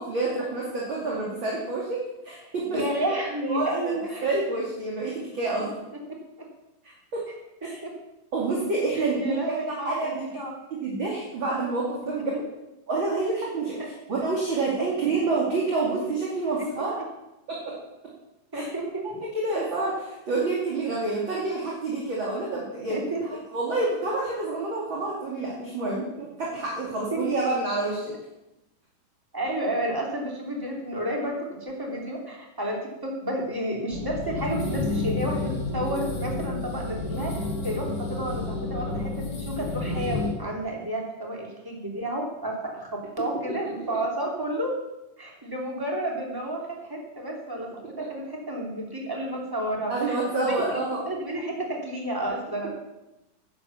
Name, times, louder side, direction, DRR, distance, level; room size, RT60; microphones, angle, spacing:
voice 1, 0.0-2.8 3.4-3.8 4.2-5.7 6.8-7.2 7.6-7.8 8.3-10.2 10.7-12.3 12.9-16.9 17.5-17.6 18.5-18.6 19.0-28.1 49.9-51.0, right 3 dB, 35° right, -4 dB, 2.7 m, -28 dB
voice 2, 2.5-4.3 6.1-6.5 7.6-8.0 9.0-10.5 12.2-12.3 13.8-13.9 16.6-16.7 18.5-19.0 22.9-23.3 27.1-27.4 29.3-44.8 45.2-50.8 51.1-52.7, right 1 dB, 5° right, -1 dB, 2.1 m, -31 dB
sound 1, 33.9-40.3, left 2 dB, 40° left, 3.4 m, -30 dB
11.0 x 9.7 x 7.1 m, 0.93 s
omnidirectional pair, 4.2 m